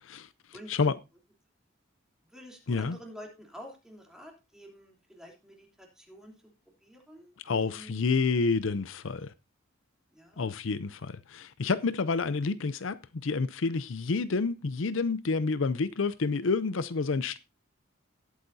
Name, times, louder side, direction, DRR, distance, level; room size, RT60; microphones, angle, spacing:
voice 1, 0.0-0.9 2.7-3.0 7.4-9.3 10.4-17.4, left 4 dB, 70° left, 0.6 m, -29 dB
voice 2, 2.3-6.3 6.8-8.0 8.4-8.5 10.1-10.5, equal, 5° right, 3.2 m, -48 dB
18.5 x 8.4 x 2.7 m
head